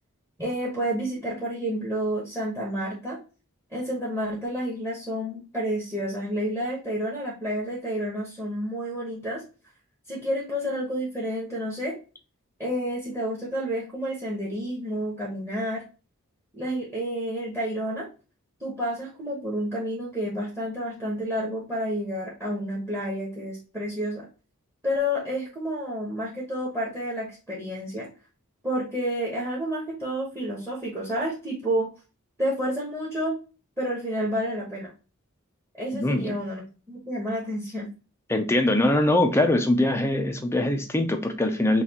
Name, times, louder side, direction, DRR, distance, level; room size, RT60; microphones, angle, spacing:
voice 1, 0.4-3.2 3.7-9.4 10.1-11.9 12.6-15.8 16.5-18.1 18.6-24.2 24.8-28.1 28.6-31.9 32.4-33.3 33.8-34.9 35.8-37.9, equal, 10° right, -4 dB, 1.1 m, -30 dB
voice 2, 35.9-36.4 38.3-41.8, left 1 dB, 10° left, 6 dB, 0.5 m, -22 dB
5.7 x 2.4 x 2.8 m, 0.33 s
head